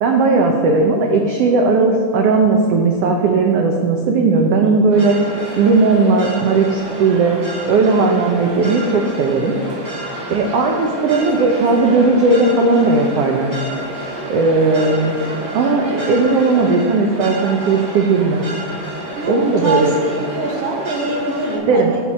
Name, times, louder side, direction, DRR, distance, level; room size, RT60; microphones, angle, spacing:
voice 1, 0.0-7.4 7.7-9.5 10.3-13.6 14.3-15.1 15.5-18.4 19.3-19.9 21.7-22.0, right 3 dB, 80° right, 2 dB, 1.4 m, -16 dB
sound 1, 4.9-21.6, right 1 dB, 35° right, 3.1 m, -29 dB
voice 2, 19.1-22.0, right 3 dB, 60° right, -1 dB, 2.3 m, -24 dB
11.5 x 7.4 x 4.2 m, 2.1 s
omnidirectional pair, 3.6 m